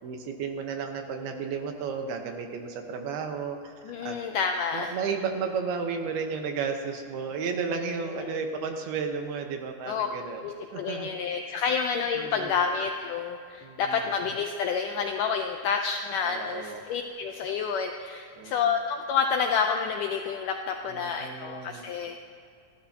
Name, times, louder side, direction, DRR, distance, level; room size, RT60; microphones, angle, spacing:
voice 1, 0.0-4.2 4.7-10.4 10.7-11.2 12.1-12.6 13.6-14.1 16.2-16.8 18.4-18.8 20.9-21.9, right 5 dB, 80° right, 4 dB, 3.1 m, -33 dB
voice 2, 3.9-4.9 8.2-8.4 9.9-10.1 10.4-22.2, left 6 dB, 80° left, 4 dB, 1.9 m, -29 dB
29.5 x 12.5 x 2.9 m, 2.5 s
omnidirectional pair, 4.5 m